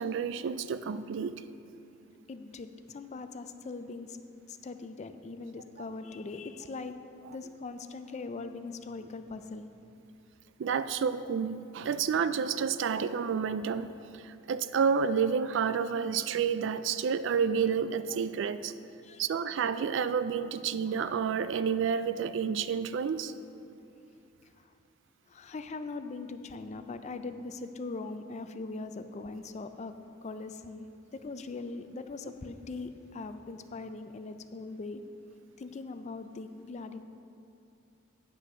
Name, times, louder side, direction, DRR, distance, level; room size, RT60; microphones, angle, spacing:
voice 1, 0.0-1.3 10.6-18.7 19.2-23.3, right 6 dB, 65° right, 13 dB, 0.3 m, -30 dB
voice 2, 2.3-4.2 4.5-7.0 7.3-9.7 11.9-12.0 19.0-19.3 25.3-30.0 30.2-30.9 31.1-35.0 35.6-37.0, left 3 dB, 35° left, 9 dB, 0.4 m, -41 dB
9.2 x 6.2 x 5.5 m, 2.6 s
head